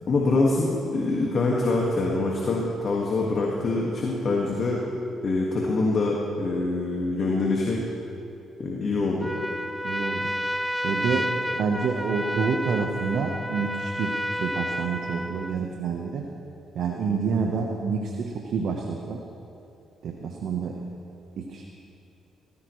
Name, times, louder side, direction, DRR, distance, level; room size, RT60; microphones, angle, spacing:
voice 1, 0.1-4.8 5.2-7.8 8.6-9.3, left 3 dB, 50° left, -3 dB, 1.8 m, -25 dB
Trumpet, 9.2-15.7, equal, ahead, 0.5 m, -31 dB
voice 2, 9.8-10.2 10.8-16.2 16.7-19.2 20.0-20.8 21.4-21.6, right 5 dB, 70° right, 1 dB, 1.1 m, -28 dB
18.0 x 16.5 x 3.2 m, 2.6 s
cardioid pair, 90°, 0 cm